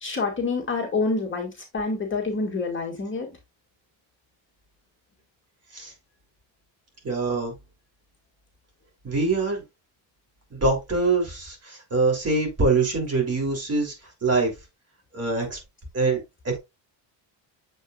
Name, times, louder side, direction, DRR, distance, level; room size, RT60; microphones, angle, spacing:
voice 1, 0.0-3.3, left 3 dB, 25° left, -1 dB, 2.2 m, -27 dB
voice 2, 7.0-7.5 9.0-9.6 10.5-13.9 14.2-14.5 15.1-15.6 15.9-16.6, right 3 dB, 30° right, 1 dB, 3.4 m, -24 dB
7.7 x 5.3 x 2.5 m, 0.22 s
cardioid pair, 130°, 46 cm